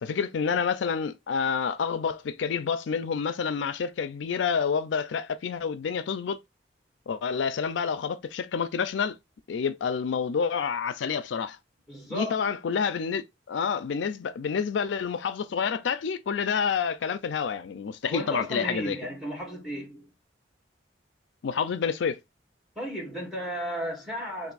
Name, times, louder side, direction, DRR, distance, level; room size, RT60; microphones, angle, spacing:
voice 1, 0.0-6.4 7.1-9.2 9.5-11.6 12.1-19.0 21.4-22.2, left 6 dB, 80° left, 0.4 m, -28 dB
voice 2, 11.9-12.4 18.0-20.1 22.7-24.5, equal, ahead, 1.5 m, -34 dB
3.4 x 2.6 x 3.9 m
head